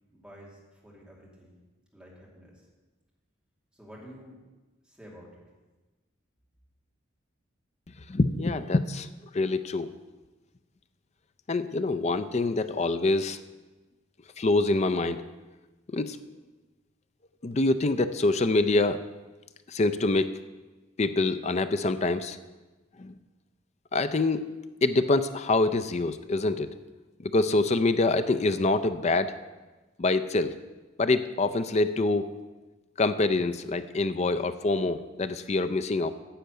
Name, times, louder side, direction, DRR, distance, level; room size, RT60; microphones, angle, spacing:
voice 1, 0.1-1.5 1.9-2.7 3.7-4.4 4.8-5.4, equal, 5° right, -4 dB, 2.5 m, -50 dB
voice 2, 8.1-9.1 9.3-9.9 11.5-13.4 14.4-15.2 15.9-16.2 17.4-19.0 19.7-20.3 21.0-22.4 23.0-23.1 23.9-24.5 24.8-26.7 27.2-29.3 30.0-30.5 31.0-32.3 33.0-36.1, left 2 dB, 35° left, 11 dB, 0.5 m, -25 dB
10.0 x 6.4 x 8.0 m, 1.2 s
head